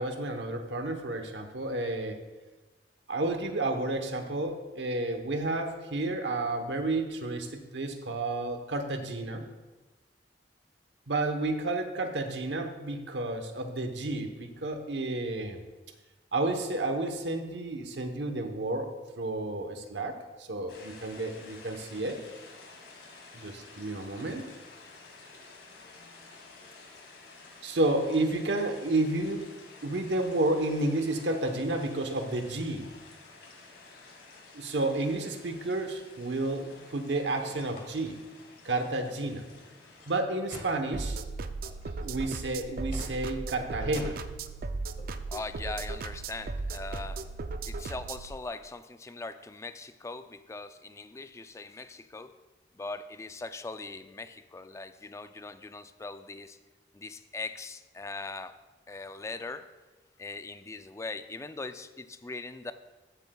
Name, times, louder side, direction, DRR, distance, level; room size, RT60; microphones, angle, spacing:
voice 1, 0.0-2.2 3.1-9.4 11.1-15.6 16.3-18.9 19.2-22.2 23.3-24.4 27.6-29.5 29.8-32.9 34.5-38.2 38.6-39.5 40.1-41.2 42.0-44.2, right 2 dB, 85° right, 6 dB, 1.0 m, -31 dB
sound 1, 20.7-40.2, left 3 dB, 80° left, 1.9 m, -52 dB
sound 2, 36.4-47.1, left 1 dB, 50° left, 1.6 m, -53 dB
sound 3, 40.9-48.3, right 3 dB, 55° right, 0.4 m, -36 dB
voice 2, 45.3-47.2 47.6-52.4 52.7-56.6 56.9-58.6 58.9-59.7 60.2-62.7, left 3 dB, 15° left, 10 dB, 0.3 m, -40 dB
14.0 x 7.8 x 2.3 m, 1.2 s
head